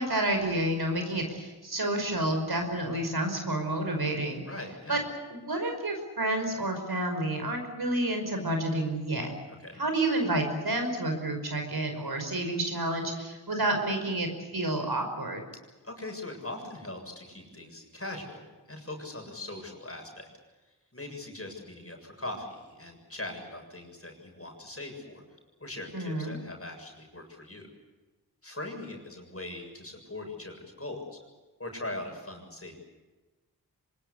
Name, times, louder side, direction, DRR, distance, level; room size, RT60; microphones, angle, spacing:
voice 1, 0.0-4.4 4.9-5.0 5.3-9.3 9.7-14.3 14.5-15.4 25.9-26.3, right 1 dB, 70° right, 5 dB, 5.4 m, -29 dB
voice 2, 4.4-5.0 9.6-9.8 15.8-20.3 20.9-25.2 25.6-27.7 28.4-31.2 31.6-32.8, left 2 dB, 35° left, 2 dB, 7.2 m, -41 dB
24.5 x 21.5 x 8.3 m, 1.2 s
cardioid pair, 45°, 40 cm